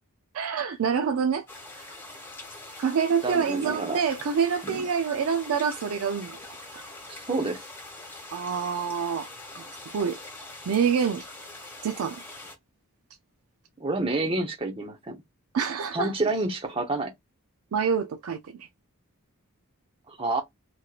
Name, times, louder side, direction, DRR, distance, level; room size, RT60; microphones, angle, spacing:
voice 1, 0.3-1.5 1.8-1.9 2.8-6.4 6.7-6.8 8.3-9.3 9.9-10.2 10.7-11.3 11.8-12.2 15.5-16.1 17.7-18.7, right 6 dB, 70° right, 0.4 m, -26 dB
sound 1, 1.5-12.5, left 2 dB, 10° left, 1.1 m, -43 dB
voice 2, 3.2-4.0 4.6-4.8 7.1-7.6 13.8-15.2 15.9-17.1 20.1-20.4, right 2 dB, 25° right, 0.8 m, -29 dB
3.0 x 2.8 x 2.3 m
head